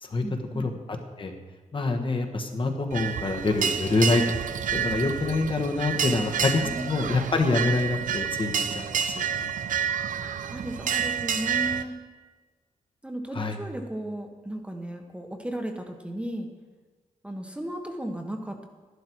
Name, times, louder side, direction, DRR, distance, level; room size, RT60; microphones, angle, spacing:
voice 1, 0.2-0.7 6.6-7.2 10.2-12.0 13.0-16.5 17.2-18.7, right 1 dB, 10° right, 3 dB, 1.1 m, -35 dB
voice 2, 1.7-4.2 4.7-6.6 6.8-9.5 13.3-13.6, left 3 dB, 40° left, 3 dB, 1.3 m, -26 dB
sound 1, 2.9-11.8, right 7 dB, 80° right, 0.7 m, -29 dB
13.0 x 11.5 x 4.6 m, 1.3 s
wide cardioid pair, 130°, 13 cm